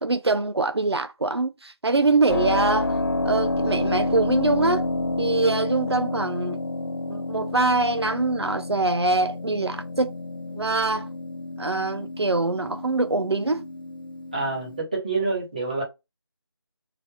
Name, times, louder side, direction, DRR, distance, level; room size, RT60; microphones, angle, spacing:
voice 1, 0.0-3.0 3.2-4.9 5.2-6.6 7.1-10.1 10.5-11.1 11.6-13.7, right 3 dB, 80° right, 0.5 m, -24 dB
Keyboard (musical), 2.3-14.8, left 2 dB, 55° left, 0.4 m, -29 dB
voice 2, 14.3-15.8, right 3 dB, 20° right, 1.0 m, -27 dB
3.3 x 2.3 x 3.3 m
figure-of-eight pair, 165°, 13 cm